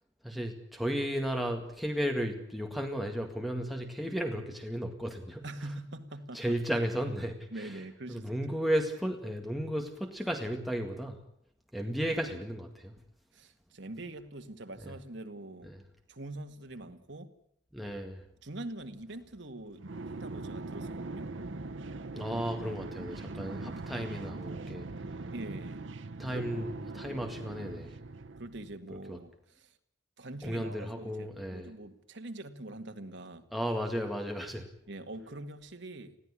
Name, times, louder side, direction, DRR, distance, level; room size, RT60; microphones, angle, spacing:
voice 1, 0.2-5.4 6.3-7.8 8.1-11.2 11.7-12.9 15.7-15.8 17.7-18.2 22.1-24.9 26.2-28.0 29.1-29.2 30.4-31.7 33.5-34.7, equal, ahead, 2 dB, 2.0 m, -34 dB
voice 2, 5.4-6.6 7.5-8.4 13.3-15.7 16.1-17.3 18.4-21.3 25.3-25.9 26.3-26.5 28.4-29.7 30.2-33.5 34.9-36.2, right 2 dB, 70° right, 7 dB, 2.0 m, -44 dB
sound 1, 19.8-28.7, right 3 dB, 90° right, 0.9 m, -41 dB
21.0 x 16.5 x 9.9 m, 0.70 s
head